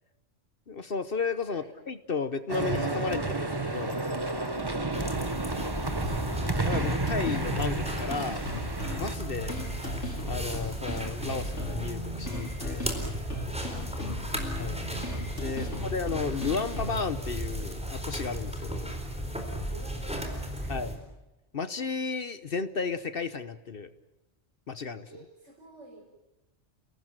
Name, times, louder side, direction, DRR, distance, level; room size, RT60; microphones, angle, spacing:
voice 1, 0.7-4.3 6.6-8.5 8.9-9.6 10.3-12.9 14.6-14.8 15.4-18.9 20.7-20.9 21.5-23.9 24.7-25.1, left 5 dB, 55° left, 13 dB, 1.2 m, -33 dB
sound 1, 2.5-9.1, right 2 dB, 20° right, 1.4 m, -31 dB
sound 2, 4.9-21.0, equal, 5° right, 4.2 m, -35 dB
sound 3, 6.0-17.0, left 1 dB, 80° left, 5.6 m, -37 dB
voice 2, 9.4-9.8 13.9-14.4 19.7-20.9 25.0-26.0, right 2 dB, 90° right, -2 dB, 5.5 m, -52 dB
30.0 x 18.5 x 9.0 m, 1.0 s
omnidirectional pair, 1.2 m